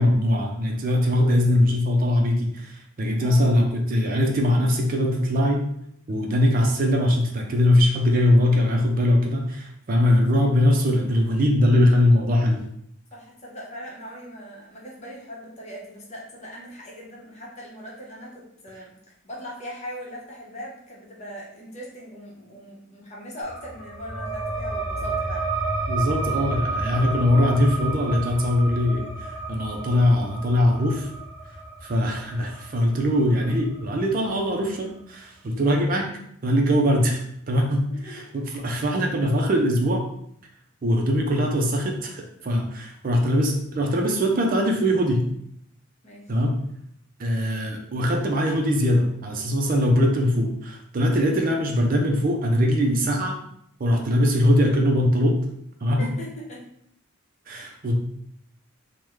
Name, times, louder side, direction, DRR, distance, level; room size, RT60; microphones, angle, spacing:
voice 1, 0.0-5.6 6.1-12.6 25.9-31.1 31.8-36.1 36.4-40.0 40.8-45.3 46.3-46.5 47.2-53.4 53.8-55.4 55.8-56.1 57.5-57.9, left 1 dB, 40° right, 2 dB, 0.4 m, -21 dB
voice 2, 3.2-3.6 13.1-18.9 19.2-25.5 37.9-38.3 46.0-46.3 56.0-56.6 57.5-57.9, equal, 35° left, -4 dB, 0.8 m, -40 dB
sound 1, 23.4-34.6, right 3 dB, 15° right, 1.1 m, -31 dB
3.4 x 2.1 x 3.1 m, 0.71 s
head